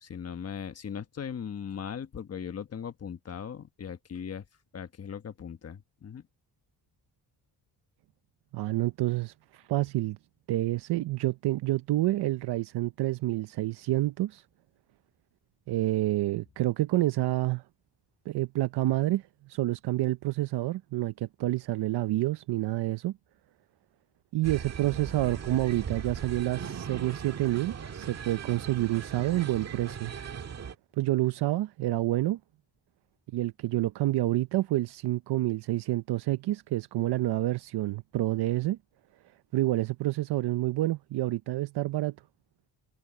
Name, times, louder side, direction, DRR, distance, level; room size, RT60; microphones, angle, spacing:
voice 1, 0.0-4.4 4.7-6.2, left 7 dB, 35° left, 1.3 m, -39 dB
voice 2, 8.5-10.2 10.5-14.4 15.7-17.6 18.3-23.2 24.3-30.1 31.0-32.4 33.3-38.8 39.5-42.2, right 16 dB, 75° right, 0.6 m, -28 dB
sound 1, 24.4-30.8, right 7 dB, 40° right, 1.6 m, -39 dB
cardioid pair, 145°, 41 cm